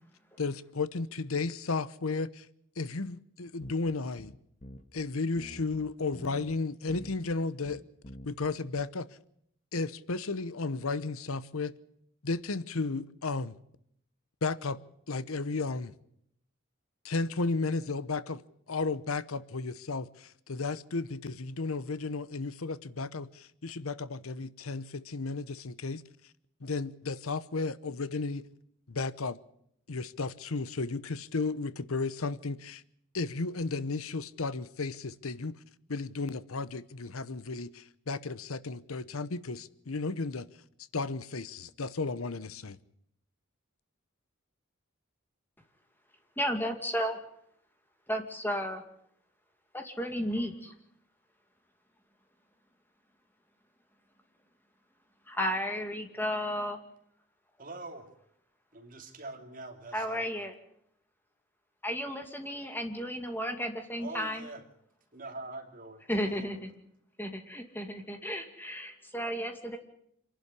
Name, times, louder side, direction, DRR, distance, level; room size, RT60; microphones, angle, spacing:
voice 1, 0.4-2.5 2.8-4.3 4.9-7.8 8.2-9.1 9.7-11.7 12.2-13.5 14.4-14.8 15.1-15.9 17.0-18.4 18.7-26.0 26.6-28.4 28.9-29.4 29.9-32.8 33.1-35.5 35.9-40.5 40.9-42.8, left 3 dB, 80° left, 0.9 m, -34 dB
sound 1, 3.6-5.0 5.4-6.5 6.9-7.4 7.6-8.5 8.8-8.9, left 1 dB, 35° left, 1.6 m, -48 dB
voice 2, 46.4-47.2 48.1-48.8 49.7-50.7 55.3-56.8 59.9-60.5 61.8-64.5 66.1-66.7 67.2-69.8, equal, 10° left, 2.4 m, -33 dB
voice 3, 57.6-58.1 58.7-60.3 64.0-64.6 65.1-66.5, right 2 dB, 40° right, 2.9 m, -44 dB
26.5 x 11.5 x 9.9 m
head